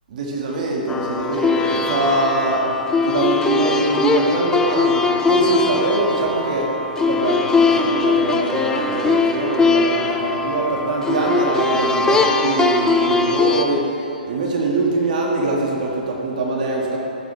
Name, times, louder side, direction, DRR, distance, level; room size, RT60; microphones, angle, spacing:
voice 1, 0.1-2.7 3.0-6.7 7.1-14.0 14.2-17.0, right 3 dB, 55° right, -2 dB, 2.3 m, -22 dB
sound 1, 0.9-13.6, left 4 dB, 10° left, 0.5 m, -20 dB
13.5 x 7.8 x 3.6 m, 3.0 s
hypercardioid pair, 130°, 5 cm